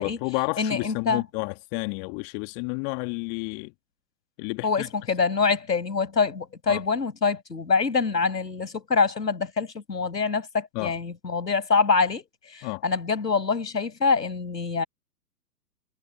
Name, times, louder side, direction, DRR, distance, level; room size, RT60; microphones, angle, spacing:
voice 1, 0.0-3.7 4.4-4.9 6.7-6.8 10.7-10.9 12.6-12.8, left 39 dB, 25° left, 1.6 m, -31 dB
voice 2, 0.6-1.2 4.6-14.8, left 5 dB, 75° left, 7.6 m, -25 dB
figure-of-eight pair, 120°, 50 cm